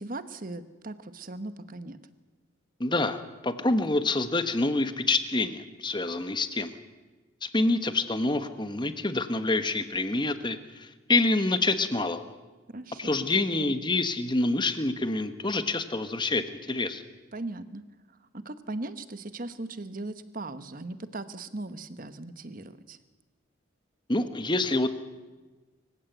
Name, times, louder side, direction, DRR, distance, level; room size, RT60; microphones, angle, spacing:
voice 1, 0.0-2.0 12.7-13.7 17.3-17.8 18.3-23.0, right 2 dB, 45° right, 12 dB, 1.1 m, -38 dB
voice 2, 2.8-6.8 7.4-12.3 13.0-17.0 24.1-24.9, left 2 dB, 25° left, 10 dB, 1.2 m, -27 dB
25.0 x 15.5 x 8.0 m, 1.3 s
head